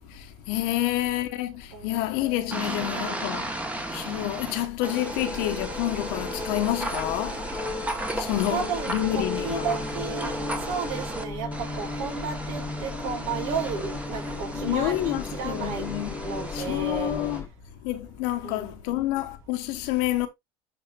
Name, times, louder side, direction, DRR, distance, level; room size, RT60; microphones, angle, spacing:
voice 1, 0.1-3.4 3.9-7.4 8.2-9.6 14.6-16.1 16.5-17.4 17.8-20.3, left 15 dB, 70° left, 1.2 m, -28 dB
voice 2, 0.7-1.2 1.7-3.3 8.4-10.4 10.7-15.9 16.2-17.1 18.4-19.0, right 6 dB, 65° right, 2.5 m, -34 dB
sound 1, 2.5-11.2 11.5-17.4, right 1 dB, 10° right, 1.4 m, -35 dB
sound 2, 5.2-17.5, left 3 dB, 15° left, 1.5 m, -35 dB
12.0 x 4.2 x 2.5 m
supercardioid pair, 115°, 14 cm